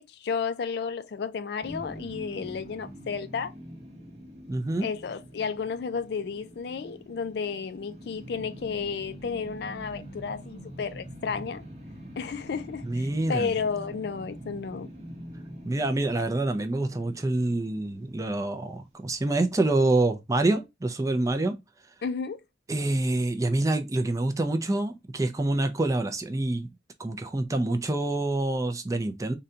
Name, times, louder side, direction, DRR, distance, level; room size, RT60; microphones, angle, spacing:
voice 1, 0.0-3.5 4.8-11.6 12.2-14.9 22.0-22.4, left 5 dB, 60° left, 0.4 m, -32 dB
sound 1, 1.6-18.8, equal, 35° right, 0.8 m, -44 dB
voice 2, 4.5-4.9 12.8-13.5 15.6-21.6 22.7-26.7 27.0-29.3, right 2 dB, 20° right, 0.4 m, -26 dB
3.8 x 2.2 x 2.7 m
head